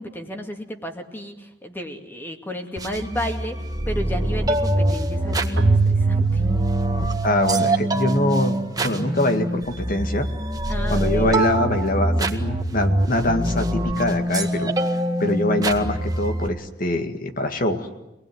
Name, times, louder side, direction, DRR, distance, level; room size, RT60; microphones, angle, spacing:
voice 1, 0.0-3.6 3.9-6.4 10.7-11.3, equal, 10° left, 4 dB, 2.3 m, -32 dB
sound 1, 2.8-16.5, right 1 dB, 20° right, 1.8 m, -24 dB
Keyboard (musical), 5.6-9.1, right 4 dB, 70° right, 1.0 m, -24 dB
voice 2, 7.2-8.6 8.8-10.3 10.9-14.7 15.2-17.9, left 1 dB, 50° left, 7 dB, 2.0 m, -23 dB
26.0 x 20.0 x 9.5 m, 0.96 s
head